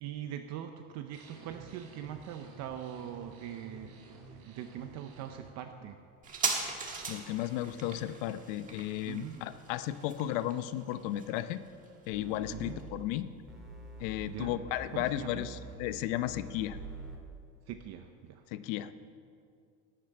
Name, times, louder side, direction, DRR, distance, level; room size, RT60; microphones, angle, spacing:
voice 1, 0.0-6.0 9.0-9.4 12.5-12.8 14.2-14.6 14.9-15.4 17.7-18.4, right 10 dB, 40° right, 6 dB, 0.7 m, -42 dB
sound 1, 1.1-5.5, right 4 dB, 70° right, 3.4 m, -52 dB
sound 2, 6.2-13.3 13.6-13.7, right 4 dB, 20° right, 1.4 m, -40 dB
voice 2, 7.1-11.6 12.1-13.3 14.0-16.8 18.5-18.9, left 13 dB, 65° left, 13 dB, 0.8 m, -34 dB
sound 3, 12.1-12.8 13.5-15.7 16.3-17.2, right 1 dB, ahead, 2.0 m, -46 dB
12.0 x 10.5 x 8.7 m, 2.4 s
cardioid pair, 170°, 42 cm